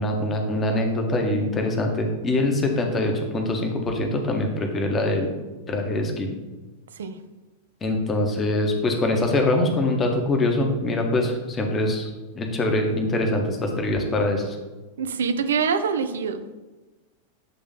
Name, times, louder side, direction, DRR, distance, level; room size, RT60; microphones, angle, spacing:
voice 1, 0.0-5.3 5.7-6.3 7.8-14.6, left 1 dB, 20° left, 2 dB, 1.0 m, -24 dB
voice 2, 15.0-16.5, right 6 dB, 65° right, 10 dB, 0.4 m, -25 dB
7.8 x 3.1 x 4.0 m, 1.2 s
figure-of-eight pair, 90°, 0 cm